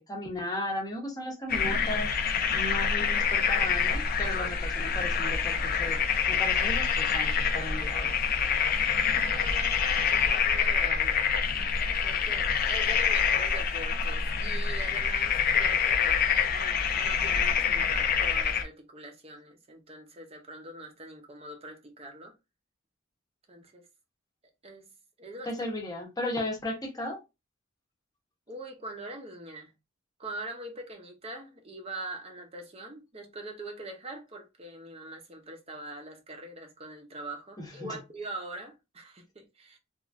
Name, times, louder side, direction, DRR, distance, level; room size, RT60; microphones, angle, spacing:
voice 1, 0.0-2.1 2.5-8.2 25.5-27.2 37.6-37.9, left 1 dB, 20° left, 0.8 m, -35 dB
sound 1, 1.5-18.6, left 6 dB, 45° left, 0.4 m, -26 dB
voice 2, 9.2-11.2 12.0-16.2 16.5-22.3 23.5-23.8 24.6-24.9 25.2-25.5 28.5-29.7 30.2-39.8, right 2 dB, 30° right, 0.6 m, -42 dB
3.0 x 2.4 x 2.4 m
head